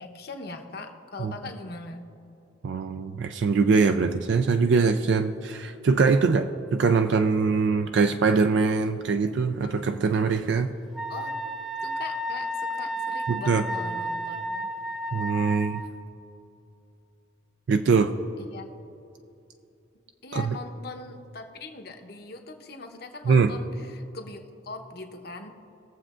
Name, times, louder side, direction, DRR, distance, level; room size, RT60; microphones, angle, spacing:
voice 1, 0.0-2.1 11.1-11.4 11.8-14.7 18.5-18.7 20.2-25.5, left 3 dB, 55° left, 4 dB, 0.9 m, -41 dB
voice 2, 2.6-10.7 13.3-13.6 15.1-15.8 17.7-18.1 20.3-20.6 23.3-23.5, right 4 dB, 65° right, 7 dB, 0.4 m, -23 dB
Wind instrument woodwind instrument, 10.9-15.9, equal, ahead, 0.5 m, -32 dB
20.0 x 7.3 x 2.5 m, 2.8 s
head